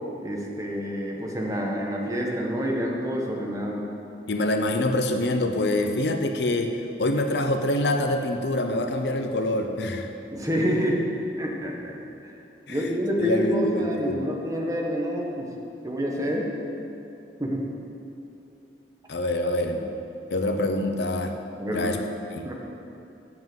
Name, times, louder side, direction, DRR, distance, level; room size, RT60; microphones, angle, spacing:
voice 1, 0.2-3.9 10.3-11.0 11.4-11.9 12.2-12.3 12.7-15.5 15.8-16.5 17.4-17.7 19.7-19.8 21.6-21.9 22.4-22.5, equal, 20° right, -1 dB, 1.2 m, -28 dB
voice 2, 4.3-6.7 7.0-10.1 12.7-12.8 13.2-14.2 19.1-19.8 20.3-21.3 21.7-22.0 22.3-22.5, left 1 dB, 70° left, 5 dB, 0.7 m, -25 dB
7.6 x 7.5 x 7.8 m, 2.7 s
head